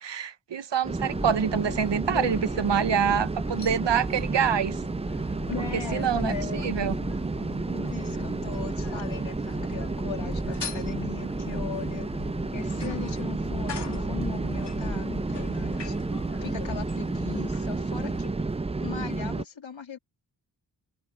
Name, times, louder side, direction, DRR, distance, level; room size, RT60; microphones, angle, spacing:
voice 1, 0.0-4.8 5.9-6.3 6.6-7.0, right 7 dB, 65° right, 1.1 m, -26 dB
sound 1, 0.8-19.4, right 3 dB, 15° right, 0.4 m, -31 dB
sound 2, 1.1-18.3, left 5 dB, 60° left, 2.4 m, -40 dB
voice 2, 5.5-6.9 7.7-12.1 12.5-16.0 16.4-18.5 18.8-20.0, left 7 dB, 80° left, 2.9 m, -39 dB
open air
wide cardioid pair, 70°, 45 cm